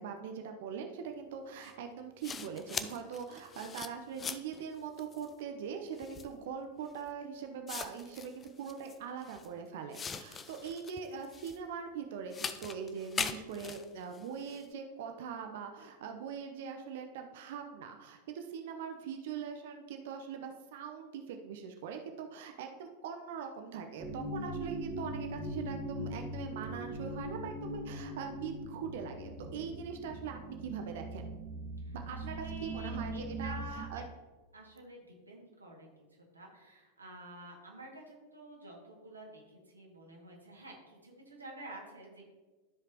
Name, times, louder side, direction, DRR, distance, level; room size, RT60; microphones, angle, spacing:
voice 1, 0.0-31.4 31.9-32.3 32.6-34.0, right 6 dB, 55° right, 5 dB, 0.7 m, -42 dB
sound 1, 1.6-1.7 2.2-4.6 5.0-5.3 6.0-6.3 7.1-7.2 7.7-9.5 9.9-11.6 12.3-14.7, left 6 dB, 20° left, 0.5 m, -41 dB
sound 2, 24.0-33.8, right 1 dB, 10° right, 1.6 m, -41 dB
voice 2, 31.8-34.1 34.5-35.9 36.3-42.3, right 1 dB, 80° right, -2 dB, 2.0 m, -49 dB
13.5 x 5.0 x 2.9 m, 1.3 s
figure-of-eight pair, 90°, 0 cm